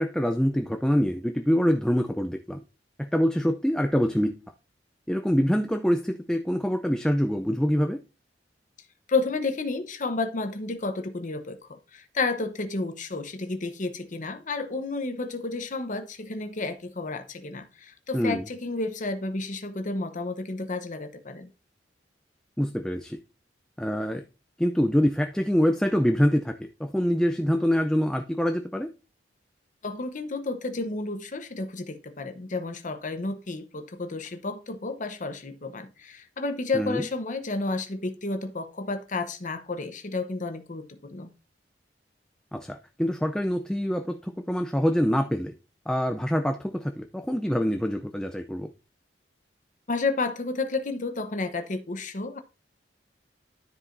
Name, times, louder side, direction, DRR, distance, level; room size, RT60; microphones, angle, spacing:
voice 1, 0.0-2.6 3.0-4.4 5.1-8.0 18.1-18.4 22.6-23.2 23.8-24.2 24.6-26.5 26.8-28.9 36.7-37.1 42.5-45.5 45.9-48.7, equal, 5° left, 0.5 m, -25 dB
voice 2, 9.1-21.5 29.8-41.3 49.9-52.4, left 3 dB, 45° left, 0.9 m, -31 dB
13.0 x 4.9 x 2.6 m
head